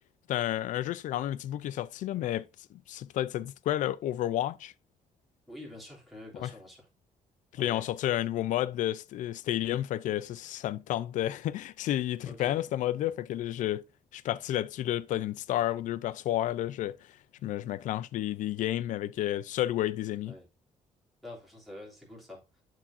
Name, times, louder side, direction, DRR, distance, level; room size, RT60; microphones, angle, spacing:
voice 1, 0.3-4.7 6.4-6.5 7.5-13.8 14.1-17.0 17.4-20.3, left 13 dB, 70° left, 0.5 m, -31 dB
voice 2, 5.5-6.9 7.6-7.9 12.2-12.6 20.2-20.5 21.2-22.4, left 1 dB, ahead, 3.1 m, -46 dB
11.5 x 4.7 x 2.7 m
cardioid pair, 165°, 13 cm